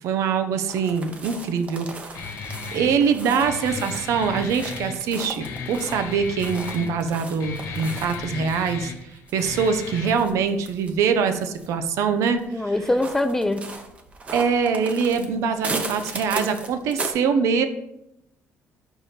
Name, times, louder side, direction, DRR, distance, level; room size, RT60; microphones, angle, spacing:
voice 1, 0.0-2.4 2.7-8.9 9.3-12.7 14.3-17.7, right 6 dB, 75° right, 9 dB, 0.6 m, -23 dB
sound 1, 0.7-17.1, right 3 dB, 25° right, 0.7 m, -37 dB
Guitar, 2.1-10.1, left 5 dB, 80° left, 0.8 m, -35 dB
voice 2, 12.5-13.7, left 1 dB, 5° left, 9 dB, 0.4 m, -23 dB
5.1 x 4.6 x 4.2 m, 0.81 s
cardioid pair, 140°, 5 cm